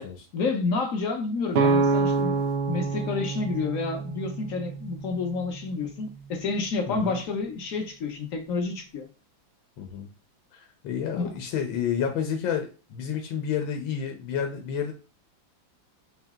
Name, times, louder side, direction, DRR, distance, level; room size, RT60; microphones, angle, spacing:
voice 1, 0.3-2.4 2.7-9.1 11.1-11.3, left 4 dB, 65° left, 0.8 m, -29 dB
sound 1, 1.5-5.3, right 4 dB, 80° right, 1.3 m, -26 dB
voice 2, 6.9-7.2 9.8-10.1 10.5-14.9, left 8 dB, 90° left, 1.4 m, -30 dB
4.0 x 2.7 x 3.5 m
omnidirectional pair, 2.1 m